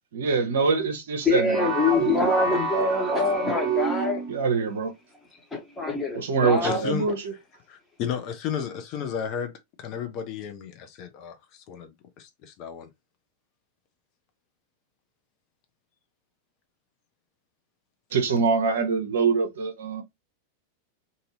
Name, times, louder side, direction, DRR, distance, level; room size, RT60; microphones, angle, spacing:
voice 1, 0.1-1.6 4.3-4.9 6.2-7.2 18.1-20.0, right 5 dB, 60° right, 0.6 m, -24 dB
voice 2, 1.2-4.2 5.5-6.8, left 3 dB, 15° left, 1.1 m, -25 dB
sound 1, 1.5-4.4, right 4 dB, 25° right, 1.0 m, -27 dB
voice 3, 6.6-7.1 7.7-9.5 9.8-12.9, left 8 dB, 40° left, 0.5 m, -33 dB
2.7 x 2.6 x 2.8 m
figure-of-eight pair, 90°, 0 cm